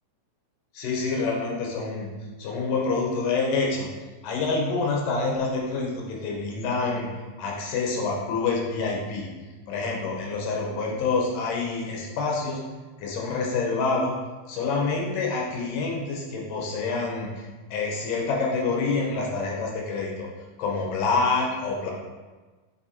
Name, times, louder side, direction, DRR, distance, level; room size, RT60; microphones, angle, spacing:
voice 1, 0.7-2.1 2.4-3.9 4.2-7.1 7.4-9.3 9.7-12.6 13.0-14.1 14.5-20.3 20.6-21.9, left 4 dB, 85° left, -1 dB, 2.6 m, -27 dB
7.8 x 2.8 x 4.2 m, 1.3 s
omnidirectional pair, 3.8 m